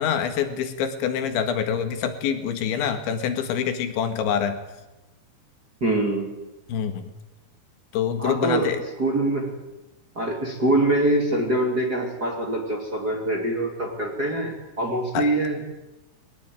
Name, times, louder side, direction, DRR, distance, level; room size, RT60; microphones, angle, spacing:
voice 1, 0.0-4.6 6.7-7.1 7.9-8.8 15.1-15.3, left 8 dB, 80° left, 7 dB, 4.1 m, -26 dB
voice 2, 5.8-6.3 8.2-8.7 9.0-9.6 10.1-15.6, right 1 dB, 25° right, 0 dB, 2.4 m, -24 dB
21.0 x 19.5 x 9.1 m, 1.0 s
omnidirectional pair, 5.2 m